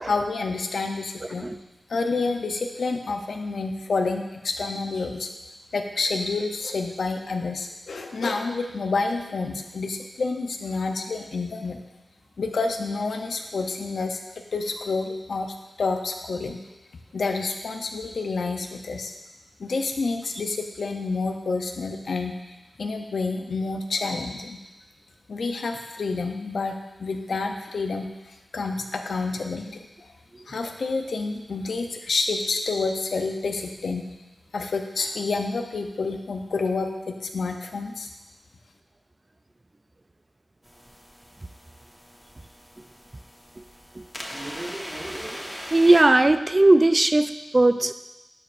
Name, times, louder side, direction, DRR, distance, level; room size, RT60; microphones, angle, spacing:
voice 1, 0.0-1.5 1.9-5.3 5.7-11.8 12.4-16.6 17.1-19.1 19.6-22.3 22.8-24.6 25.3-29.9 30.5-34.0 34.5-38.1, left 3 dB, 85° left, 4 dB, 0.6 m, -29 dB
sound 1, 40.6-46.0, equal, ahead, 1.3 m, -40 dB
voice 2, 44.3-47.9, right 2 dB, 35° right, 10 dB, 0.3 m, -20 dB
11.0 x 5.2 x 2.5 m, 1.0 s
cardioid pair, 45°, 0 cm